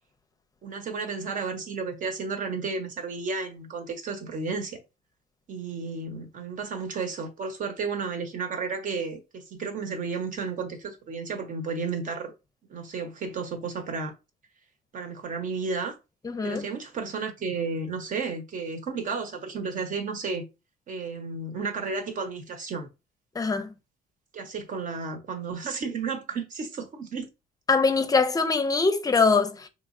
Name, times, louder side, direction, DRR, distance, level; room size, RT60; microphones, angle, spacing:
voice 1, 0.6-4.8 5.5-12.3 12.7-14.1 14.9-16.0 16.4-20.4 20.9-22.9 24.3-27.3, right 4 dB, 50° right, 1.1 m, -32 dB
voice 2, 16.2-16.6 23.3-23.7 27.7-29.7, left 4 dB, 20° left, 0.6 m, -23 dB
4.6 x 3.1 x 2.6 m
cardioid pair, 110°, 17 cm